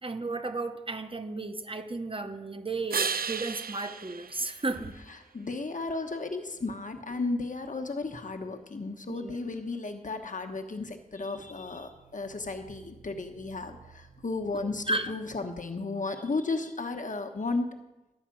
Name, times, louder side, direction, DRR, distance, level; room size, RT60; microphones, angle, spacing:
voice 1, 0.0-4.9 9.1-9.4 14.9-15.1, right 2 dB, 35° right, 8 dB, 0.9 m, -34 dB
sound 1, 2.9-5.5 11.2-15.2, right 6 dB, 75° right, 0.5 m, -38 dB
voice 2, 5.3-17.7, left 3 dB, 60° left, 5 dB, 1.1 m, -34 dB
11.5 x 5.7 x 8.5 m, 1.0 s
wide cardioid pair, 80°, 15 cm